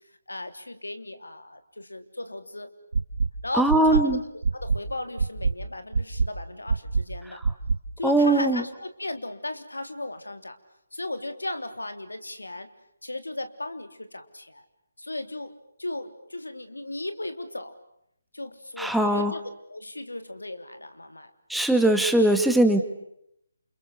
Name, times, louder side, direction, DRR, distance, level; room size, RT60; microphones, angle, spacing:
voice 1, 0.3-2.7 3.4-4.2 4.5-7.4 8.0-10.6 10.9-12.7 13.0-14.6 15.0-17.8 18.3-21.3, left 2 dB, 85° left, 9 dB, 3.4 m, -36 dB
sound 1, 2.9-3.3 3.7-4.0 4.4-4.8 5.2-5.5 5.9-6.3 6.7-7.0 7.4-7.8, right 4 dB, 65° right, 1.8 m, -23 dB
voice 2, 3.5-4.2 7.3-7.4 8.0-8.6 18.8-19.3 21.5-22.8, right 1 dB, ahead, 5 dB, 1.9 m, -20 dB
29.5 x 28.5 x 6.8 m, 0.77 s
figure-of-eight pair, 150°, 0 cm